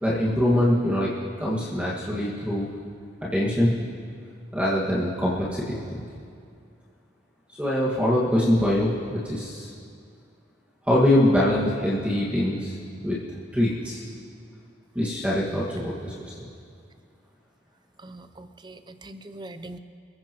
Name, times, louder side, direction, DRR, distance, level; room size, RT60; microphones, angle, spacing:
voice 1, 0.0-1.1 1.4-2.7 3.2-3.8 4.5-6.1 7.6-9.7 10.9-12.8 13.0-13.2 13.5-14.0 15.0-16.5, left 1 dB, 5° right, -7 dB, 1.8 m, -23 dB
voice 2, 18.0-19.8, right 2 dB, 25° right, 10 dB, 0.6 m, -42 dB
27.5 x 15.0 x 3.0 m, 2.4 s
head